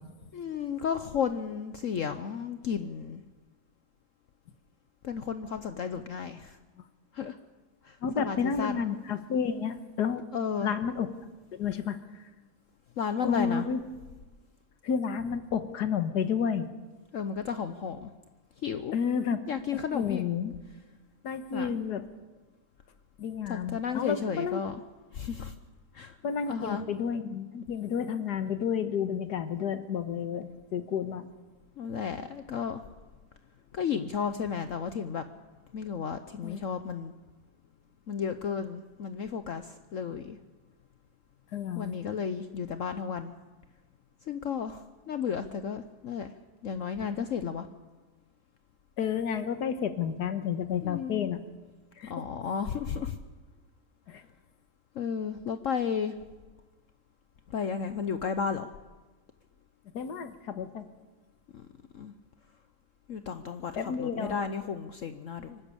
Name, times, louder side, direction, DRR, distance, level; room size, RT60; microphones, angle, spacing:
voice 1, 0.3-3.2 5.0-6.6 7.1-7.4 7.8-8.8 10.3-10.7 13.0-13.7 17.1-18.1 18.6-19.0 19.5-20.2 21.5-21.7 23.5-24.8 25.1-25.5 25.9-26.2 26.5-26.8 31.8-32.8 33.7-35.2 35.7-37.1 38.1-40.4 41.7-43.3 44.3-46.3 46.6-47.7 50.8-51.3 52.1-53.2 54.9-56.2 57.5-58.7 61.5-61.6 61.9-62.1 63.1-65.6, left 7 dB, 60° left, 10 dB, 1.1 m, -33 dB
voice 2, 8.0-10.2 10.6-11.1 11.5-12.0 13.2-13.8 14.8-16.7 18.9-19.4 19.9-20.6 21.2-22.1 23.2-24.6 26.2-31.3 36.4-36.6 41.5-42.0 49.0-51.4 52.0-52.1 54.1-54.2 59.9-60.9 63.8-64.3, left 7 dB, 80° left, 10 dB, 1.8 m, -31 dB
25.0 x 12.5 x 8.5 m, 1.3 s
omnidirectional pair, 1.7 m